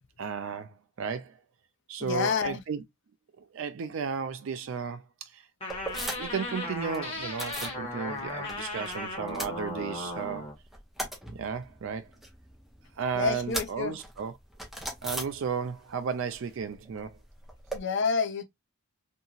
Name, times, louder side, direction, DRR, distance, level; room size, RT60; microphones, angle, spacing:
voice 1, 0.2-1.4 1.9-2.8 3.4-5.5 6.2-10.5 11.3-12.1 13.0-14.4 15.0-17.2, right 6 dB, 60° right, 0.3 m, -34 dB
voice 2, 2.0-2.6 13.1-13.9 17.7-18.4, left 5 dB, 55° left, 0.5 m, -28 dB
sound 1, 5.6-10.5, left 2 dB, 25° left, 1.2 m, -36 dB
sound 2, 5.7-6.5 6.7-7.8 8.2-8.9 9.2-10.2 10.5-15.9 16.2-17.8, right 1 dB, ahead, 0.6 m, -39 dB
2.8 x 2.7 x 2.3 m
head